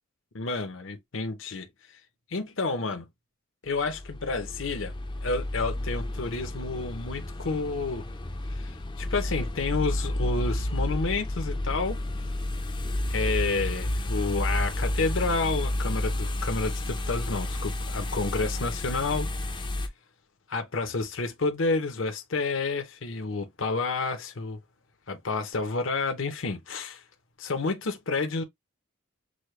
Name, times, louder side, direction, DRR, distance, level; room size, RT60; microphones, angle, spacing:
voice 1, 0.3-1.7 2.3-3.0 3.6-4.9 5.2-8.0 8.5-12.0 13.1-19.3 20.5-24.6 25.1-27.0 27.4-28.4, left 3 dB, 65° left, 0.8 m, -30 dB
sound 1, 3.7-19.9, left 1 dB, 25° left, 0.6 m, -31 dB
6.3 x 2.2 x 3.2 m
head